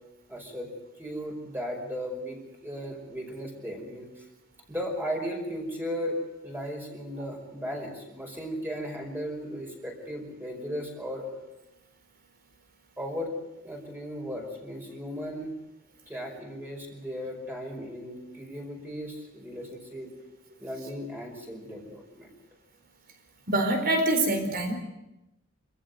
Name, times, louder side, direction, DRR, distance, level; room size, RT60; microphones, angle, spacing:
voice 1, 0.3-0.7 1.0-4.2 4.7-6.2 6.4-11.3 13.0-13.3 13.6-15.5 16.1-20.1 20.6-22.3, equal, 10° right, 1 dB, 5.2 m, -36 dB
voice 2, 23.5-24.7, right 2 dB, 45° right, 6 dB, 4.3 m, -25 dB
26.5 x 15.5 x 8.1 m, 0.94 s
head